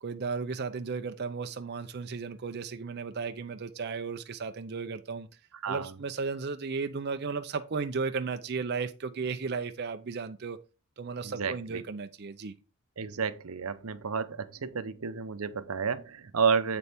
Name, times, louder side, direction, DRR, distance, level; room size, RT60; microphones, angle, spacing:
voice 1, 0.0-5.3 5.7-10.6 11.0-12.6, right 4 dB, 50° right, 0.5 m, -34 dB
voice 2, 11.2-11.8 13.0-16.8, right 6 dB, 85° right, 0.7 m, -31 dB
7.9 x 6.8 x 3.5 m
head